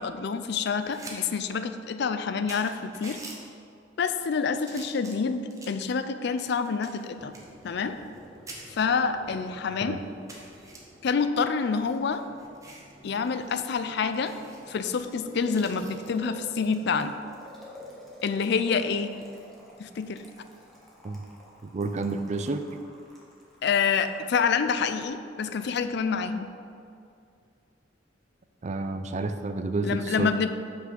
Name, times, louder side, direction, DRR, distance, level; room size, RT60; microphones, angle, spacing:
voice 1, 0.0-3.2 4.0-7.3 7.6-7.9 8.7-10.0 11.0-12.2 13.0-14.3 14.7-17.2 18.2-19.2 19.8-20.2 23.6-26.5 29.8-30.5, left 5 dB, 60° left, 10 dB, 0.4 m, -27 dB
sound 1, 0.7-1.2 1.5-1.6 2.2-2.3 2.5-3.4 4.1-4.3 4.7-5.8 6.4-8.2 8.5-8.6 9.3-9.4 9.7-9.8 10.3-10.8 11.6-12.9 13.3-13.5 13.7-13.8 14.2-14.6 15.5-16.1 17.8-18.1, right 2 dB, 15° right, 1.0 m, -46 dB
Boiling, 7.1-25.1, equal, ahead, 1.4 m, -50 dB
voice 2, 21.6-22.8 28.6-30.5, right 3 dB, 40° right, 8 dB, 0.4 m, -30 dB
5.9 x 5.7 x 6.3 m, 2.4 s
head